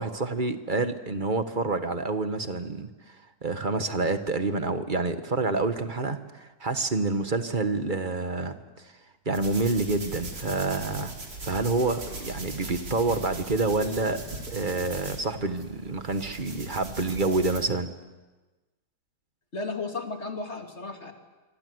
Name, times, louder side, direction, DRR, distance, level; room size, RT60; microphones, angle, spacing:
voice 1, 0.0-3.1 3.4-8.6 9.2-11.1 11.4-14.2 14.5-17.9, right 3 dB, 30° right, 9 dB, 1.4 m, -28 dB
sound 1, 9.3-17.6, right 2 dB, 80° right, 4.9 m, -39 dB
voice 2, 19.5-21.1, left 3 dB, 40° left, 4 dB, 2.9 m, -34 dB
27.0 x 24.5 x 8.0 m, 1.2 s
omnidirectional pair, 1.9 m